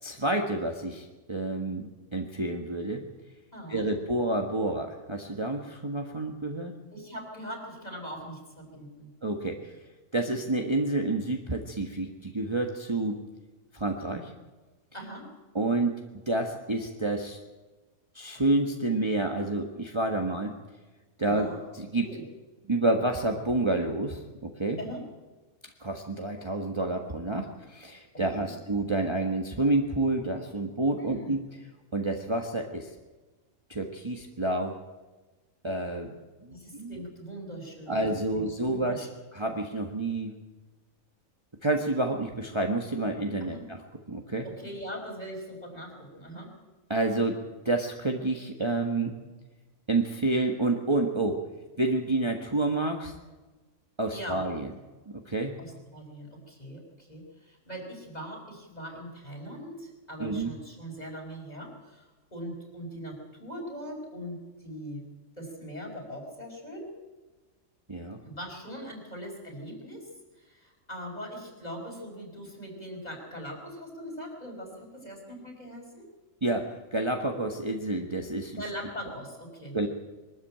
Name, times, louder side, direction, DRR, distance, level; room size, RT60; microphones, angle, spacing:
voice 1, 0.0-3.0 3.7-6.7 9.2-9.8 10.1-13.2 13.7-14.3 15.5-17.4 18.1-20.5 21.2-21.5 21.8-22.1 22.7-24.8 25.8-31.4 31.9-32.9 33.7-34.8 35.6-36.1 36.4-37.0 37.9-39.1 39.3-40.3 41.6-43.8 44.1-44.4 46.9-47.4 47.6-49.2 49.9-51.4 51.8-53.1 54.0-54.7 55.2-55.5 60.2-60.5 67.9-68.2 76.4-78.6 79.7-79.9, right 2 dB, 20° right, 2 dB, 1.4 m, -29 dB
voice 2, 3.5-3.8 6.9-9.1 14.9-15.3 21.2-21.6 22.0-22.2 24.8-25.0 28.4-28.5 30.9-31.3 36.5-39.1 43.4-43.6 44.4-46.5 54.1-54.4 55.6-65.0 65.4-66.9 68.2-70.1 70.4-76.0 78.6-79.8, equal, 30° left, 1 dB, 5.8 m, -41 dB
23.0 x 13.0 x 9.0 m, 1.2 s
omnidirectional pair, 1.4 m